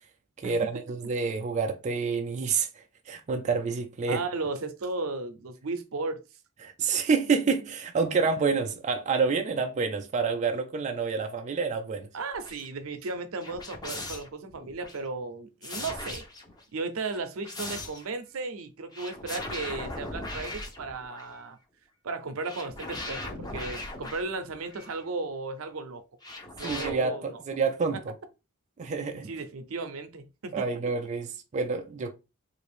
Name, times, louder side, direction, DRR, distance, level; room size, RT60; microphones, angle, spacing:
voice 1, 0.4-4.2 6.6-12.1 26.6-28.1 28.8-29.3 30.5-32.1, right 5 dB, 35° right, 0.3 m, -28 dB
voice 2, 4.1-6.2 12.1-16.2 16.7-21.6 22.0-26.0 26.6-27.4 29.3-30.6, right 3 dB, 75° right, 0.6 m, -35 dB
sound 1, 12.3-12.7 13.4-15.0 15.6-16.6 17.1-18.1 18.9-21.4 22.4-25.0 26.2-26.9, left 2 dB, 20° left, 0.6 m, -39 dB
3.4 x 2.5 x 3.3 m
head